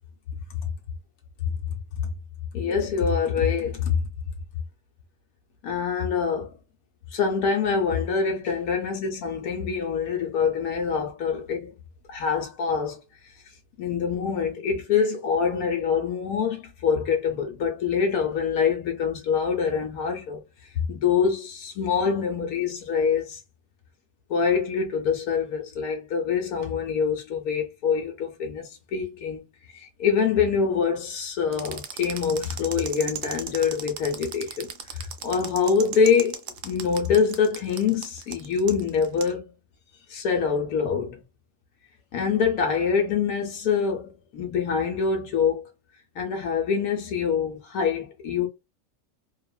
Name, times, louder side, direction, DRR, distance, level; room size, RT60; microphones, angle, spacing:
voice 1, 2.5-4.0 5.6-6.6 7.1-11.7 12.1-13.0 13.8-20.4 20.9-23.4 24.3-29.4 29.7-36.4 36.6-39.5 40.1-41.2 42.1-45.7 46.2-48.5, left 6 dB, 90° left, 1.1 m, -25 dB
sound 1, 31.5-39.3, right 8 dB, 80° right, 0.4 m, -36 dB
2.8 x 2.3 x 2.2 m
omnidirectional pair, 1.5 m